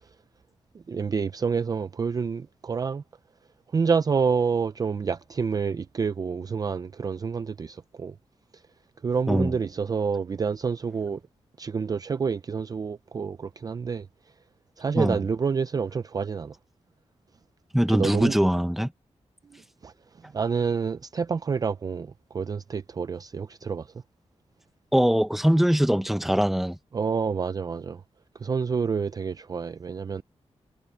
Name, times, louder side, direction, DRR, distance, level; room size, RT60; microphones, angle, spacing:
voice 1, 0.9-3.0 3.7-8.1 9.0-11.2 11.6-14.1 14.8-16.5 17.9-18.4 19.8-19.9 20.3-23.9 26.9-28.0 28.4-30.2, right 5 dB, 35° right, 0.4 m, -28 dB
voice 2, 17.7-18.9 24.9-26.8, equal, ahead, 1.0 m, -22 dB
wide cardioid pair, 170°, 11 cm